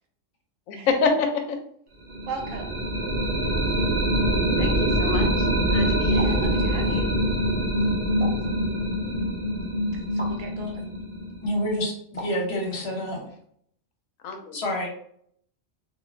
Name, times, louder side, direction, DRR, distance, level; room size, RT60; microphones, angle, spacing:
voice 1, 0.7-1.6 4.6-6.3 14.2-14.6, left 4 dB, 85° left, 5 dB, 1.0 m, -27 dB
sound 1, 2.1-11.9, equal, 50° right, 0.8 m, -24 dB
voice 2, 2.3-2.7 6.1-7.1 10.1-10.8 12.9-13.1, right 4 dB, 85° right, 3 dB, 1.0 m, -37 dB
sound 2, 6.2-6.5 8.2-8.5 10.2-10.4 12.2-12.5, right 1 dB, 15° left, 0.3 m, -37 dB
voice 3, 11.4-13.3 14.5-14.9, equal, 55° left, -1 dB, 1.0 m, -28 dB
2.5 x 2.4 x 3.1 m, 0.66 s
omnidirectional pair, 1.4 m